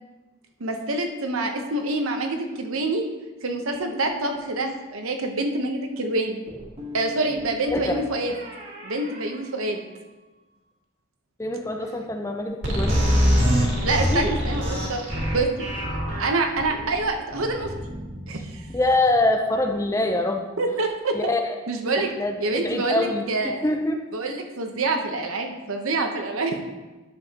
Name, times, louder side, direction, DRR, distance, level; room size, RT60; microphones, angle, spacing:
voice 1, 0.6-3.0 3.4-6.4 6.9-8.3 8.8-9.8 13.8-15.5 16.2-17.7 18.3-18.6 20.6-21.3 21.7-22.1 22.4-23.6 24.1-26.6, right 2 dB, 80° right, 4 dB, 0.9 m, -26 dB
sound 1, 3.7-4.6 6.5-10.2, left 1 dB, 25° right, 1.7 m, -41 dB
voice 2, 11.4-13.0 14.1-14.4 18.7-20.5 21.1-21.5 22.0-24.0, left 2 dB, 15° left, 5 dB, 0.5 m, -24 dB
sound 2, 12.6-19.0, equal, 55° right, 2.1 m, -24 dB
10.5 x 7.1 x 2.9 m, 1.2 s
head